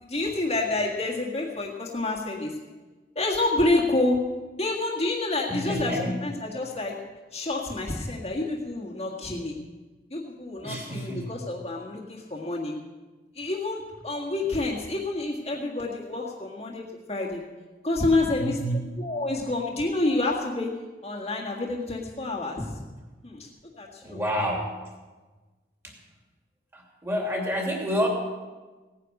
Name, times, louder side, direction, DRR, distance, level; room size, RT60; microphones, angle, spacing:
voice 1, 0.0-2.5 3.2-4.2 4.6-7.0 7.3-9.5 10.1-12.7 13.3-16.8 17.1-17.4 17.8-18.6 19.0-20.7 21.0-22.8 23.2-23.5 23.8-24.2, left 2 dB, 35° left, -3 dB, 1.8 m, -28 dB
voice 2, 5.5-6.3 10.6-11.4 18.4-18.9 24.0-24.8 25.8-25.9 26.7-28.1, equal, 15° right, 0 dB, 2.8 m, -29 dB
17.5 x 9.7 x 6.5 m, 1.3 s
head